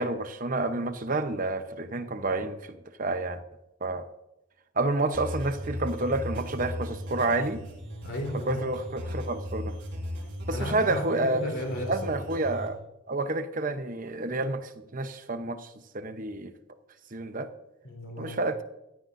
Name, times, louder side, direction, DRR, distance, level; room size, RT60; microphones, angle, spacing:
voice 1, 0.0-3.4 3.8-4.0 4.8-7.6 8.5-9.8 10.5-11.5 11.9-12.8 13.1-15.7 15.9-16.5 17.1-17.5 18.2-18.6, right 2 dB, 40° right, 9 dB, 0.9 m, -29 dB
sound 1, 5.1-12.7, equal, 55° right, 5.2 m, -37 dB
voice 2, 8.0-8.6 10.5-12.3 17.8-18.4, left 1 dB, 55° left, 1 dB, 3.8 m, -35 dB
16.0 x 14.0 x 2.7 m, 0.91 s
head